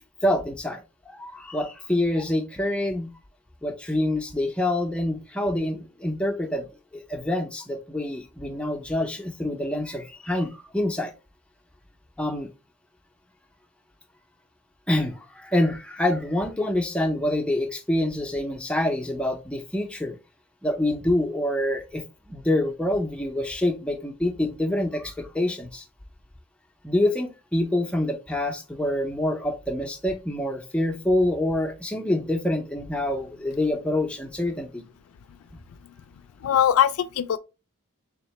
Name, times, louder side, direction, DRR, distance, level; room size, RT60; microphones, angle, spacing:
voice 1, 0.2-0.8 1.1-3.1 3.6-6.7 6.9-11.1 12.2-12.5 14.9-20.2 20.6-25.8 26.8-34.8, left 1 dB, 5° left, 0.5 m, -26 dB
voice 2, 36.4-37.4, left 10 dB, 85° left, 0.3 m, -21 dB
3.7 x 3.5 x 3.1 m
head